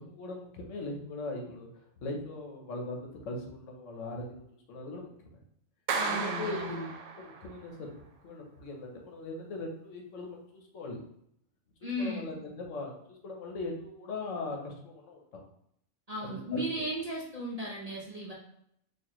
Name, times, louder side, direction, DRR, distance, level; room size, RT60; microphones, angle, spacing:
voice 1, 0.0-4.4 4.7-5.4 6.0-6.7 7.2-11.0 11.8-12.9 13.2-15.4 16.2-16.7, left 2 dB, 75° left, 1 dB, 1.1 m, -40 dB
voice 2, 5.9-6.9 11.8-12.3 16.1-18.3, equal, 40° right, -4 dB, 0.6 m, -35 dB
Clapping, 5.9-7.5, right 5 dB, 75° right, 0.9 m, -34 dB
4.2 x 2.5 x 3.0 m, 0.73 s
omnidirectional pair, 1.3 m